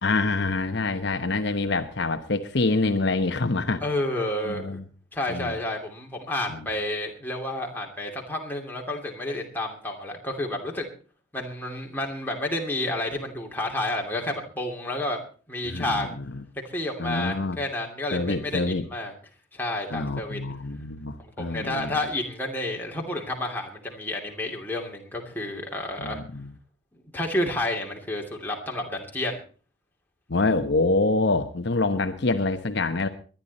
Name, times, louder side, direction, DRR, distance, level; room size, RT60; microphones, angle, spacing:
voice 1, 0.0-3.8 4.5-4.8 5.3-5.5 6.5-6.6 15.6-16.1 17.0-17.6 18.1-18.8 19.9-21.9 26.0-26.5 30.3-33.1, left 3 dB, 60° left, 7 dB, 1.0 m, -26 dB
voice 2, 3.8-4.8 5.1-10.9 11.3-15.2 15.5-16.1 16.7-19.1 19.5-20.4 21.4-26.2 27.1-29.4, left 1 dB, 10° left, 0 dB, 2.8 m, -30 dB
22.0 x 10.5 x 4.2 m, 0.39 s
head